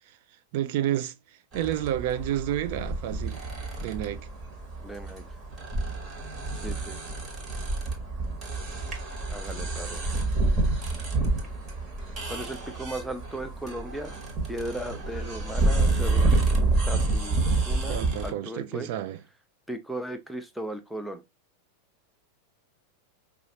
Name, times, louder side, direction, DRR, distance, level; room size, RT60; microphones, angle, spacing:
voice 1, 0.5-1.1 1.5-3.5 3.8-4.3 17.9-19.2, right 12 dB, 50° right, 0.4 m, -30 dB
sound 1, 1.5-18.3, right 2 dB, 30° right, 1.3 m, -28 dB
voice 2, 4.8-5.2 6.5-7.2 9.3-10.0 12.3-14.1 14.5-16.4 16.8-18.9 19.7-21.2, right 1 dB, ahead, 0.6 m, -37 dB
4.9 x 2.4 x 2.7 m
figure-of-eight pair, 90°, 0 cm